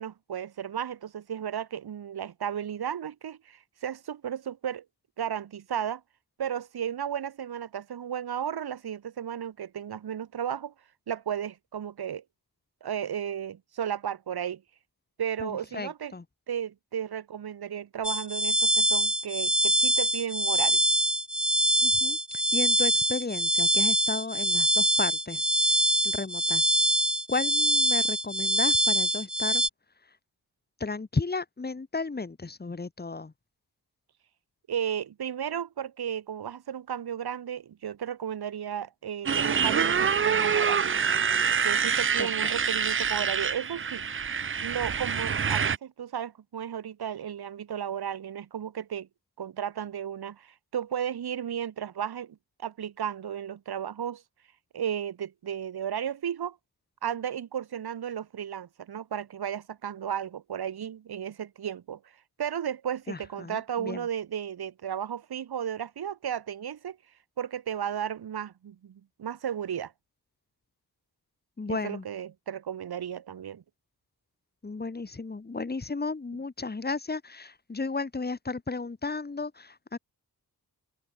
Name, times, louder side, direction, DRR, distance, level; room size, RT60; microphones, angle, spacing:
voice 1, 0.0-4.8 5.2-6.0 6.4-10.7 11.1-12.2 12.8-14.6 15.2-16.1 16.5-20.8 34.7-40.9 41.6-44.0 44.6-49.1 49.4-52.4 52.6-54.2 54.7-56.6 57.0-62.0 62.4-67.0 67.4-69.9 71.7-73.6, right 9 dB, 85° right, 2.2 m, -34 dB
voice 2, 15.4-16.2 21.8-25.8 26.0-26.7 27.3-29.6 30.8-33.3 42.2-42.5 63.1-64.0 71.6-72.0 74.6-80.0, left 3 dB, 25° left, 4.4 m, -34 dB
sound 1, 18.0-29.7, equal, ahead, 1.2 m, -24 dB
Motorcycle, 39.3-45.8, right 6 dB, 35° right, 0.7 m, -26 dB
open air
wide cardioid pair, 170°, 37 cm